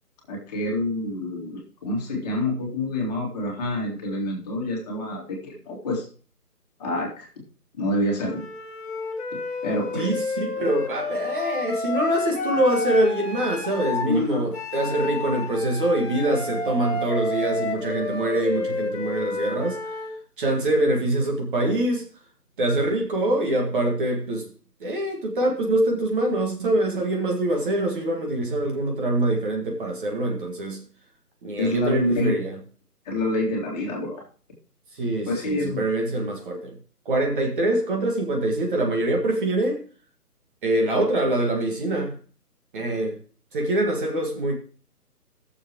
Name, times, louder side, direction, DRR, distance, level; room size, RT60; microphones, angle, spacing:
voice 1, 0.3-6.1 6.8-7.3 7.7-8.4 9.3-10.1 14.0-14.5 31.5-32.4 33.1-34.2 35.3-35.9, left 1 dB, 25° left, 2.2 m, -27 dB
Wind instrument woodwind instrument, 8.3-14.1 14.5-20.2, left 4 dB, 40° left, 2.3 m, -30 dB
voice 2, 9.9-19.8 20.4-22.0 22.6-24.5 24.8-30.8 31.4-32.6 34.9-36.7 37.1-39.8 40.6-42.2 42.7-43.2 43.5-44.5, right 1 dB, 35° right, 1.8 m, -24 dB
17.5 x 7.0 x 3.0 m
figure-of-eight pair, 150°, 47 cm